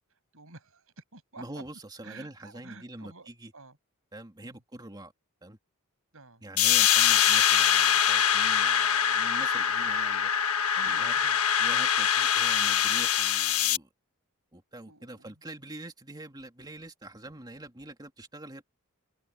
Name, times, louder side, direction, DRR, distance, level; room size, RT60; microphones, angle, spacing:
voice 1, 0.3-1.4 2.0-3.8 4.4-4.6 6.1-6.4 9.7-9.8 10.7-11.4 14.9-15.3, right 3 dB, 70° right, 7.7 m, -50 dB
voice 2, 1.4-3.5 4.1-5.1 5.4-5.6 6.4-10.3 10.8-11.2 11.6-13.9 14.5-18.7, right 1 dB, 20° right, 2.7 m, -45 dB
sound 1, 6.6-13.8, left 9 dB, 75° left, 1.3 m, -24 dB
head